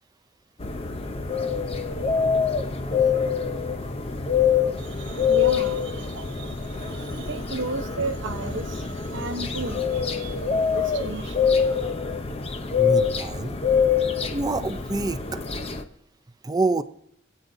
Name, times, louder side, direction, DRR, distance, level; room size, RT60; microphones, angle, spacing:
sound 1, 0.6-15.8, left 6 dB, 30° left, 0.7 m, -25 dB
voice 1, 4.8-11.9, right 3 dB, 65° right, 7 dB, 0.8 m, -34 dB
voice 2, 12.8-13.6 14.3-15.4 16.4-16.8, right 3 dB, 20° right, 11 dB, 0.5 m, -26 dB
23.0 x 8.3 x 2.7 m, 0.77 s
head